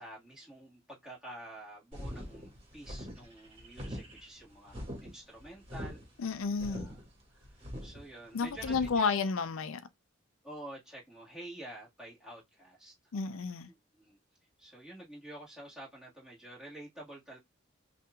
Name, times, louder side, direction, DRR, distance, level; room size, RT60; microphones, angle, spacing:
voice 1, 0.0-6.0 6.7-7.0 7.3-9.3 10.4-12.9 13.7-14.2 14.6-17.4, right 1 dB, 5° right, 1.6 m, -49 dB
sound 1, 1.9-9.0, equal, 30° right, 1.8 m, -43 dB
voice 2, 6.2-6.9 8.3-9.8 13.1-13.7, left 5 dB, 80° left, 0.4 m, -31 dB
5.6 x 2.5 x 2.3 m
head